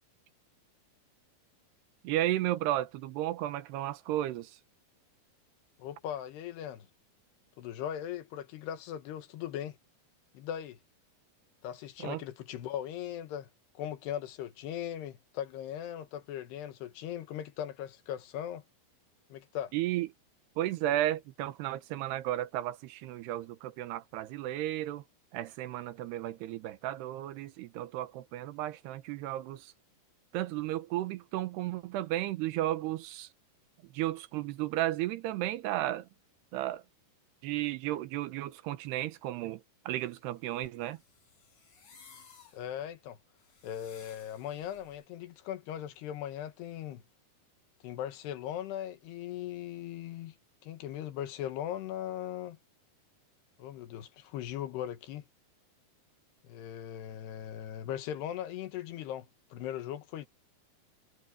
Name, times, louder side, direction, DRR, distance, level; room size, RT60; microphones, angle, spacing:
voice 1, 2.0-4.5 12.0-12.2 19.7-20.1 20.6-25.0 25.3-29.7 30.3-33.3 33.9-36.1 36.5-36.8 37.4-41.0, right 14 dB, 85° right, 3.1 m, -33 dB
voice 2, 5.8-6.9 7.6-9.8 10.3-10.8 11.6-13.5 13.8-18.6 19.3-19.7 42.5-43.2 43.6-47.0 47.8-50.4 50.6-52.6 53.6-55.3 56.4-60.3, left 10 dB, 85° left, 3.5 m, -39 dB
sound 1, 39.9-45.1, left 5 dB, 55° left, 6.8 m, -58 dB
omnidirectional pair, 4.7 m